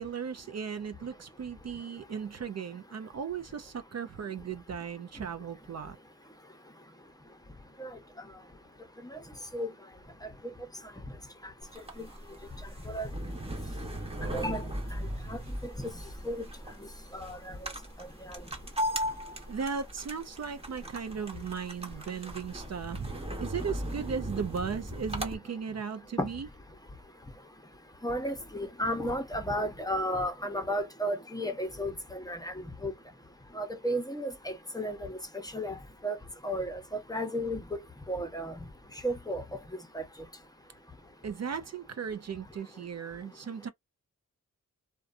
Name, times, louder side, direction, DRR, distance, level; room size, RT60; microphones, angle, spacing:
voice 1, 0.0-6.0 19.5-23.1 23.4-26.5 41.2-43.7, right 6 dB, 55° right, 0.5 m, -36 dB
sound 1, 11.6-25.3, equal, 20° right, 0.9 m, -38 dB
voice 2, 14.3-14.6 15.3-15.4 16.2-16.4 17.1-17.4 18.3-18.4 26.2-26.3 28.0-32.9 33.5-35.2 35.5-35.8 36.0-36.2 36.4-36.8 37.1-37.6 38.1-38.5 39.0-39.4 39.9-40.0, equal, 10° left, 0.7 m, -33 dB
2.5 x 2.2 x 2.5 m
cardioid pair, 55°, 32 cm